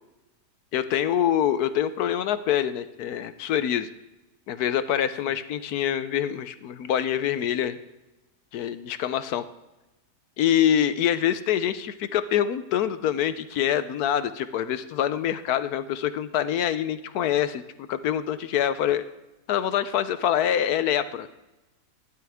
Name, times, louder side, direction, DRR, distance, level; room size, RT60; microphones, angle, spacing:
voice 1, 0.7-3.9 4.5-7.8 8.5-9.4 10.4-17.6 17.9-19.0 19.5-21.3, left 10 dB, 70° left, 12 dB, 1.0 m, -25 dB
12.5 x 11.0 x 3.5 m, 1.0 s
omnidirectional pair, 1.9 m